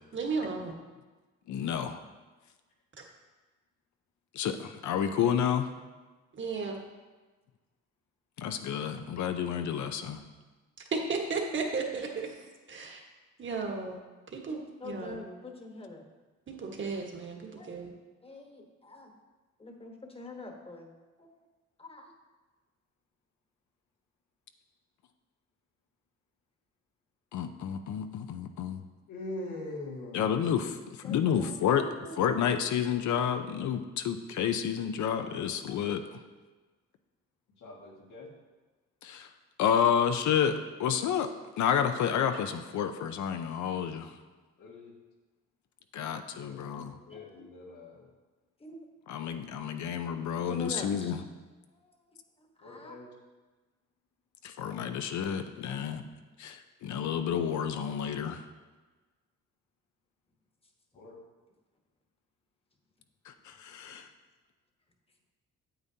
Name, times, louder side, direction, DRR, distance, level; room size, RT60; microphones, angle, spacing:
voice 1, 0.1-0.7 6.3-6.8 10.9-12.4 12.7-13.0 13.4-14.0 14.3-15.2 16.5-17.9, right 4 dB, 40° right, 1 dB, 1.4 m, -34 dB
voice 2, 1.5-2.0 4.3-5.7 8.4-10.2 27.3-28.8 30.1-31.9 32.2-36.0 39.0-39.3 39.6-41.3 41.6-44.2 45.9-47.0 49.1-51.2 54.4-56.0 56.4-58.4 63.3-64.1, left 8 dB, 70° left, 7 dB, 0.7 m, -30 dB
voice 3, 14.8-16.0 17.5-17.7 18.2-19.1 19.6-20.9 21.2-21.3 21.8-22.1 31.0-32.3 47.1-47.5 48.6-48.8 50.5-51.1 51.8-51.9 52.6-53.0, left 2 dB, 20° left, 3 dB, 1.2 m, -45 dB
voice 4, 29.1-30.3 37.6-38.3 44.6-44.9 46.0-48.1 52.6-53.1 61.0-61.2, left 1 dB, 90° left, -2 dB, 1.8 m, -43 dB
8.8 x 8.0 x 2.8 m, 1.3 s
cardioid pair, 90°, 30 cm